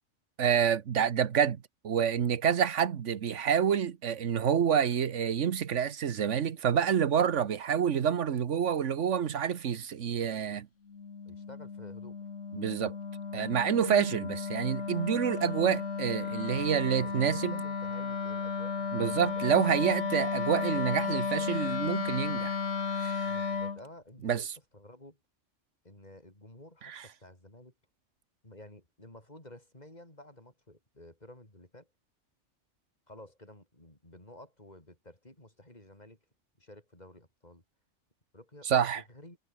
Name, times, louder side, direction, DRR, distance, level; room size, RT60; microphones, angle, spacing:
voice 1, 0.4-10.7 12.5-12.9 13.3-17.5 18.9-22.5 23.0-23.3 24.2-24.4 26.9-27.0 38.7-39.0, right 8 dB, 90° right, 1.4 m, -28 dB
Wind instrument woodwind instrument, 10.9-23.8, left 5 dB, 80° left, 2.0 m, -34 dB
voice 2, 11.3-12.3 13.9-14.0 16.5-16.7 17.0-19.5 23.2-25.2 25.8-27.7 28.4-31.9 33.1-36.2 36.6-37.6 38.3-39.4, left 1 dB, 35° left, 6.0 m, -52 dB
omnidirectional pair, 1.2 m